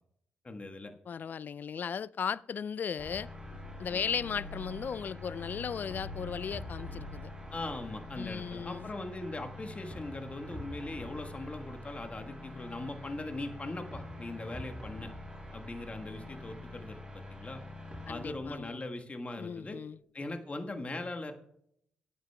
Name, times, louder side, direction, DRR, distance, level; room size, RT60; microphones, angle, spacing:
voice 1, 0.4-0.9 3.9-4.0 7.5-15.1 15.5-17.6 18.0-19.8 20.1-21.3, left 2 dB, 30° left, 1.4 m, -40 dB
voice 2, 1.1-3.3 3.8-7.3 8.2-8.9 18.1-18.8 19.4-20.0, left 7 dB, 45° left, 0.3 m, -36 dB
sound 1, 3.0-18.6, left 1 dB, 20° right, 5.5 m, -45 dB
sound 2, 3.5-12.9 13.3-13.7 14.4-14.7, left 2 dB, 70° left, 0.8 m, -50 dB
23.0 x 9.3 x 2.3 m
hypercardioid pair, 40°, 4 cm